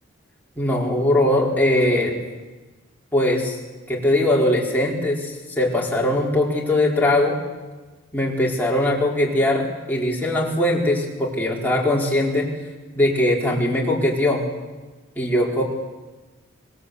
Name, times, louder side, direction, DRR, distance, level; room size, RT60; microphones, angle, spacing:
voice 1, 0.6-2.1 3.1-3.6 3.9-7.4 8.1-12.5 12.9-14.4 15.2-15.6, left 1 dB, 10° left, -3 dB, 4.6 m, -20 dB
26.0 x 19.5 x 8.5 m, 1.2 s
head